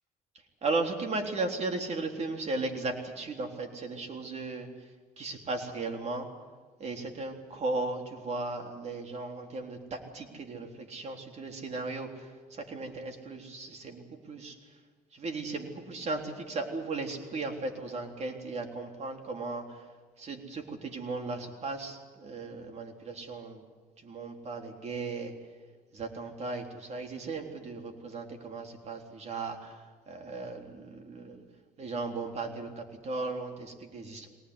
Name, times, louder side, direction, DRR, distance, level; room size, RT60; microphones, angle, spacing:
voice 1, 0.6-4.7 5.2-6.3 6.8-14.6 15.1-19.9 20.2-23.6 24.0-25.3 25.9-31.4 31.8-34.3, right 3 dB, 40° right, 3 dB, 3.7 m, -36 dB
23.0 x 19.0 x 9.8 m, 1.4 s
cardioid pair, 110°, 17 cm